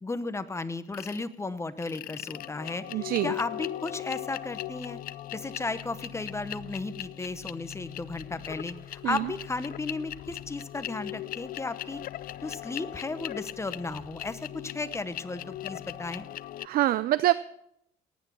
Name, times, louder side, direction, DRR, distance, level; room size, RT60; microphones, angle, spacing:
voice 1, 0.0-5.0 5.3-12.0 12.4-16.3, left 3 dB, 15° left, 12 dB, 0.9 m, -35 dB
sound 1, 0.9-1.2 1.8-16.7, left 14 dB, 60° left, 0.5 m, -39 dB
voice 2, 2.9-3.3 9.0-9.2 16.6-17.3, right 14 dB, 60° right, 16 dB, 0.5 m, -25 dB
18.5 x 9.3 x 6.1 m, 0.75 s
cardioid pair, 110°, 17 cm